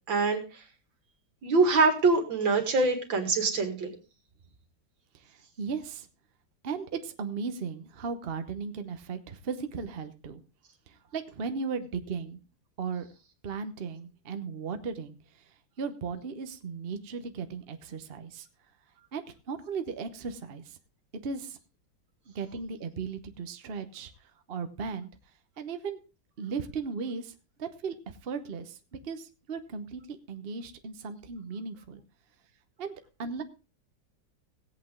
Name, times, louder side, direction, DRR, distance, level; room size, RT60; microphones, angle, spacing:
voice 1, 0.1-0.6 1.4-3.9, right 3 dB, 75° right, 5 dB, 2.6 m, -24 dB
voice 2, 5.1-6.1 6.6-10.4 10.9-12.4 12.8-13.1 13.4-18.5 19.1-20.8 21.2-21.6 22.3-25.1 25.6-26.0 26.4-27.3 27.6-28.8 29.0-32.0 32.8-32.9 33.2-33.4, right 5 dB, 40° right, 9 dB, 0.9 m, -36 dB
17.5 x 8.3 x 3.7 m, 0.31 s
omnidirectional pair, 2.1 m